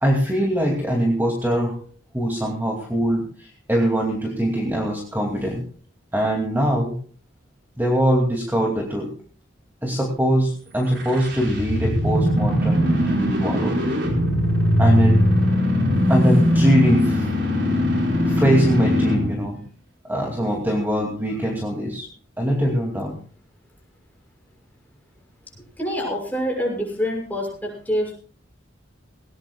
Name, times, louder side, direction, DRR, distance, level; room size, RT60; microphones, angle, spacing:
voice 1, 0.0-1.7 2.1-3.2 3.7-5.6 6.1-6.9 7.8-9.1 9.8-13.8 14.8-15.2 16.1-17.3 18.2-19.6 20.1-22.1 22.4-23.2, equal, 10° right, 0 dB, 2.5 m, -22 dB
sound 1, 10.8-19.4, equal, 65° right, 5.2 m, -20 dB
voice 2, 25.8-28.1, equal, 10° left, 0 dB, 6.4 m, -26 dB
20.0 x 18.5 x 2.4 m, 0.42 s
head